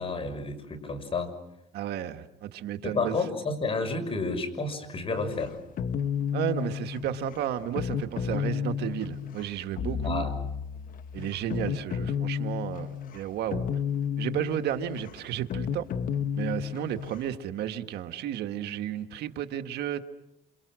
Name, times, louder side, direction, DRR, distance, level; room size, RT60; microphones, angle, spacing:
voice 1, 0.0-1.3 2.8-5.6 10.0-10.3, left 3 dB, 35° left, 6.2 m, -30 dB
voice 2, 1.7-3.2 6.3-10.3 11.1-13.6 14.2-15.9 16.4-20.0, right 11 dB, 75° right, 1.7 m, -33 dB
sound 1, 5.2-17.4, left 7 dB, 55° left, 1.0 m, -32 dB
28.5 x 28.5 x 6.4 m
cardioid pair, 110°, 17 cm